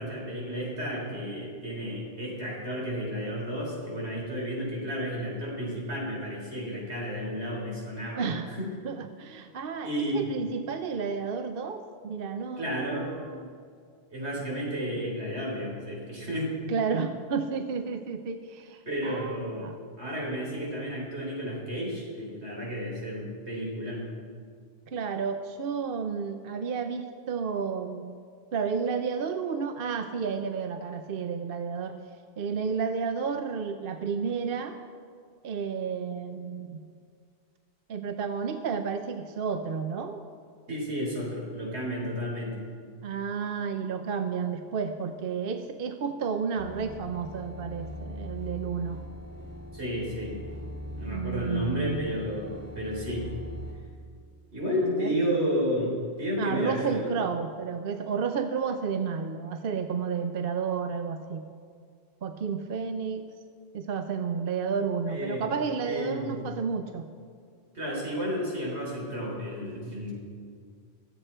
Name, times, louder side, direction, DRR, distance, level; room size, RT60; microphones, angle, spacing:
voice 1, 0.0-8.7 9.8-10.3 12.6-13.1 14.1-16.5 18.8-19.7 20.0-24.1 40.7-42.7 49.7-50.4 50.9-53.3 54.5-57.1 65.1-65.6 65.8-66.4 67.7-70.1, equal, 80° right, -3 dB, 4.1 m, -32 dB
voice 2, 8.2-8.5 8.8-13.5 16.7-19.8 24.9-28.0 28.5-32.0 32.4-34.8 35.4-36.8 37.9-40.2 43.0-49.0 51.1-52.0 54.8-55.2 56.4-61.5 62.2-63.3 63.7-67.1, right 6 dB, 60° right, 7 dB, 0.8 m, -31 dB
sound 1, 46.6-53.7, equal, 10° left, 3.0 m, -41 dB
24.0 x 8.1 x 4.5 m, 2.1 s
omnidirectional pair, 1.1 m